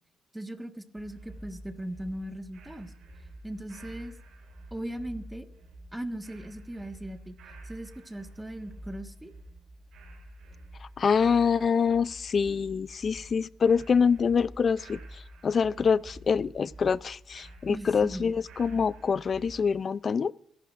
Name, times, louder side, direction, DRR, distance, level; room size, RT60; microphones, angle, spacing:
voice 1, 0.3-2.9 3.4-4.2 4.7-5.5 5.9-7.3 7.6-9.3 17.7-18.3, right 1 dB, 10° right, 1.5 m, -38 dB
sound 1, 1.0-19.6, right 1 dB, 70° right, 4.3 m, -48 dB
voice 2, 11.0-15.0 15.4-20.3, left 6 dB, 45° left, 0.4 m, -25 dB
24.5 x 11.5 x 2.5 m
cardioid pair, 90°, 0 cm